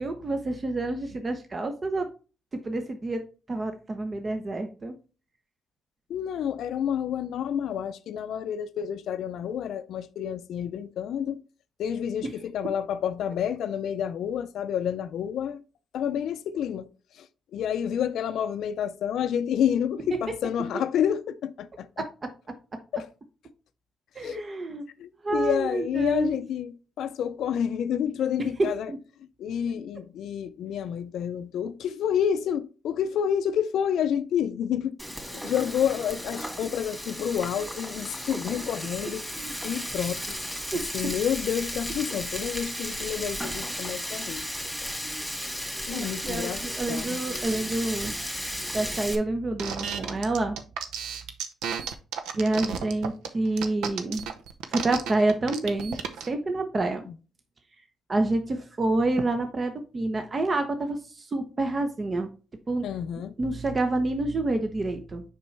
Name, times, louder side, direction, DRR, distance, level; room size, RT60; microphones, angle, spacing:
voice 1, 0.0-2.1 2.6-3.2 3.5-4.9 22.0-22.1 24.2-24.8 25.2-26.3 28.6-29.0 38.3-38.4 39.0-39.5 40.7-40.8 45.9-48.1 48.7-50.6 52.4-54.2 54.7-56.0 56.3-57.1 58.1-62.3 62.7-62.8 63.4-65.2, right 2 dB, 40° right, 0.9 m, -28 dB
voice 2, 6.1-11.4 11.8-15.6 15.9-16.9 17.2-17.3 17.5-22.1 22.9-23.1 24.2-24.4 25.0-28.9 29.4-39.3 39.6-40.4 40.7-44.5 44.8-44.9 45.9-46.6 46.9-47.2 62.8-63.3, left 9 dB, 80° left, 0.4 m, -29 dB
Frying (food), 35.0-49.2, equal, ahead, 2.1 m, -34 dB
sound 1, 49.6-56.3, right 7 dB, 90° right, 0.7 m, -33 dB
6.7 x 5.2 x 3.3 m
supercardioid pair, 60°, 0 cm